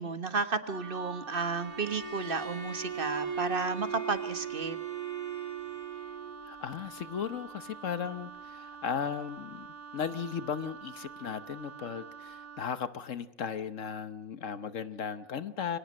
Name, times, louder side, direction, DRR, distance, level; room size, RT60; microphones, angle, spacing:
voice 1, 0.0-4.8, right 4 dB, 40° right, 11 dB, 1.5 m, -32 dB
Wind instrument woodwind instrument, 0.6-12.7, right 6 dB, 80° right, 1.7 m, -47 dB
Bowed string instrument, 1.6-6.4, right 6 dB, 60° right, 3.6 m, -38 dB
voice 2, 6.4-9.7 9.9-15.8, left 7 dB, 65° left, 13 dB, 1.3 m, -36 dB
24.5 x 18.5 x 6.5 m, 0.82 s
omnidirectional pair, 1.4 m